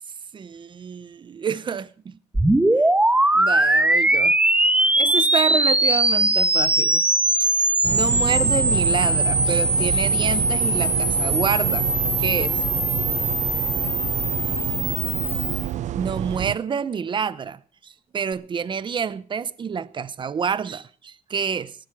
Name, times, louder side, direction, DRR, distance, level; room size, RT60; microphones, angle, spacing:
voice 1, 0.3-2.2 3.3-4.4 5.0-7.0 7.3-11.9 12.2-12.6 15.9-21.7, right 6 dB, 35° right, 0.9 m, -28 dB
sound 1, 2.3-15.7, right 1 dB, 10° right, 1.5 m, -21 dB
sound 2, 7.8-16.6, right 12 dB, 60° right, 0.6 m, -28 dB
18.5 x 12.0 x 4.9 m
cardioid pair, 105°, 14 cm